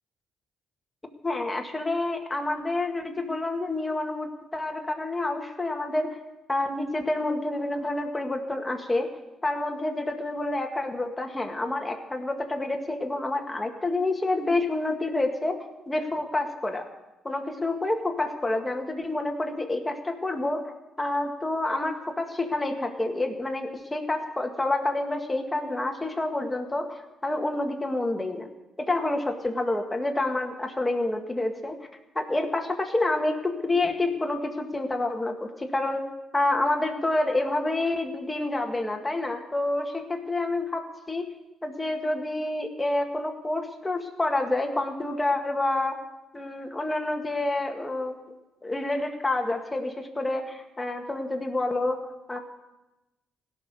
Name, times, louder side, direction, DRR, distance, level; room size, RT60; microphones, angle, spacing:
voice 1, 1.2-6.2 6.5-9.1 9.4-15.6 15.9-16.8 17.2-20.6 21.0-28.5 28.8-31.8 32.2-36.0 36.3-40.8 41.1-41.3 41.6-46.0 46.3-48.2 48.6-52.4, left 2 dB, 15° left, 3 dB, 1.9 m, -28 dB
16.5 x 6.5 x 8.3 m, 1.0 s
cardioid pair, 90°, 0 cm